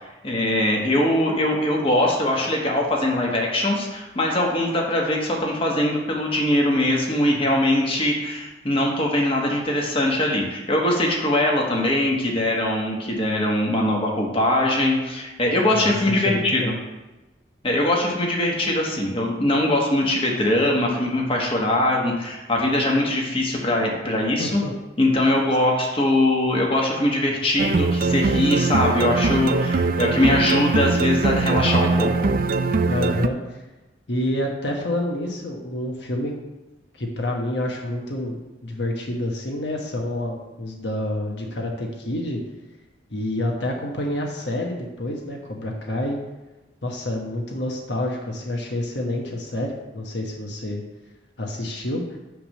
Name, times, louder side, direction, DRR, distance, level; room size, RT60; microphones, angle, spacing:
voice 1, 0.0-16.7 17.6-24.6 25.0-32.3, left 1 dB, 30° left, -1 dB, 1.5 m, -22 dB
voice 2, 15.7-16.8 24.4-24.7 32.8-33.6 34.1-36.3 37.0-42.4 43.1-46.2 46.8-50.8 51.4-52.2, left 1 dB, 75° left, 0 dB, 1.3 m, -28 dB
sound 1, 27.6-33.3, right 3 dB, 55° right, 0.4 m, -21 dB
9.5 x 3.5 x 6.5 m, 1.1 s
head